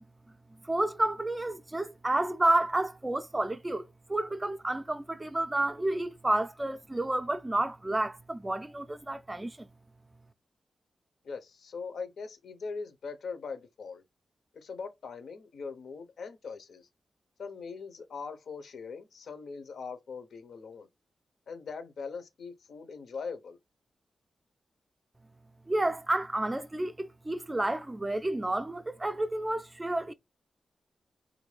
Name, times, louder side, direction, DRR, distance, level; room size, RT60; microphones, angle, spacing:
voice 1, 0.6-9.7 25.7-30.1, right 1 dB, 15° right, 0.3 m, -30 dB
voice 2, 11.2-14.0 14.5-16.9 17.4-20.9 21.5-23.6, left 5 dB, 80° left, 0.7 m, -41 dB
3.6 x 2.6 x 3.1 m
wide cardioid pair, 110°, 0 cm